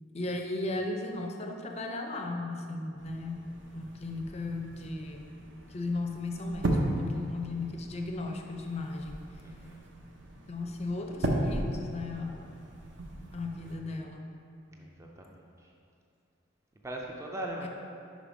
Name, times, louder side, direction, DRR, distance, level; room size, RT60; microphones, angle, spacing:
voice 1, 0.1-3.4 3.7-5.3 5.7-9.2 10.5-12.5 13.3-14.2 17.6-17.7, left 2 dB, 35° left, 2 dB, 0.6 m, -36 dB
sound 1, 3.0-13.8, right 1 dB, 70° right, 0.8 m, -36 dB
voice 2, 9.4-9.8 14.7-15.7 16.8-17.7, right 1 dB, 15° right, -1 dB, 0.4 m, -40 dB
5.2 x 5.1 x 5.1 m, 2.6 s
head